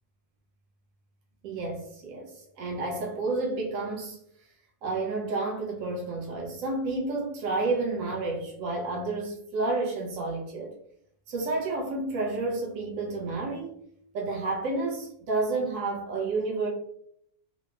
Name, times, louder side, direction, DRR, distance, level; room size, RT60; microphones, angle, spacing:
voice 1, 1.4-4.2 4.8-10.7 11.3-13.7 14.1-16.7, right 3 dB, 90° right, 1.0 m, -30 dB
3.2 x 2.0 x 2.2 m
omnidirectional pair, 1.3 m